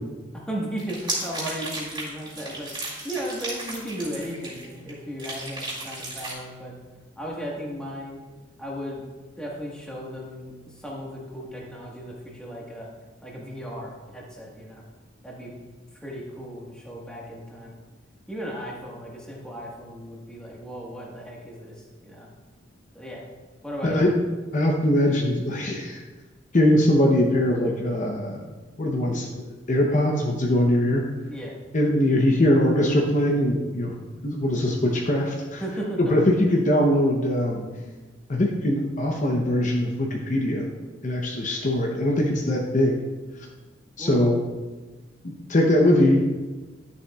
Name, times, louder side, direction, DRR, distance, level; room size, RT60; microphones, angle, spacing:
voice 1, 0.5-6.7 7.2-8.2 8.6-9.0 9.4-12.9 13.2-14.8 15.2-15.5 16.0-17.8 18.3-22.3 22.9-23.2 23.6-24.1 31.3-31.6 35.6-36.1 44.0-44.2, equal, 5° left, -4 dB, 1.4 m, -35 dB
sound 1, 0.8-4.9 5.2-6.3, right 2 dB, 25° right, 2.2 m, -34 dB
voice 2, 24.5-26.0 26.5-28.5 28.8-31.0 31.7-33.9 34.2-35.6 36.0-37.7 38.3-40.7 41.0-43.0 44.0-44.4 45.2-46.2, left 1 dB, 40° left, 0 dB, 0.7 m, -22 dB
11.0 x 7.0 x 2.3 m, 1.3 s
head